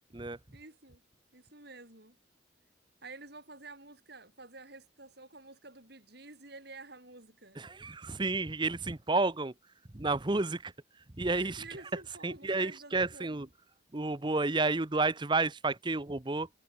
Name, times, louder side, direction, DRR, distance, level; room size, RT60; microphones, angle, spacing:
voice 1, 0.5-1.0 1.3-2.2 3.0-7.6 11.3-13.5, right 3 dB, 55° right, 6.3 m, -50 dB
voice 2, 7.6-9.5 9.9-11.6 12.2-13.5 13.9-16.5, right 3 dB, 25° right, 0.8 m, -31 dB
head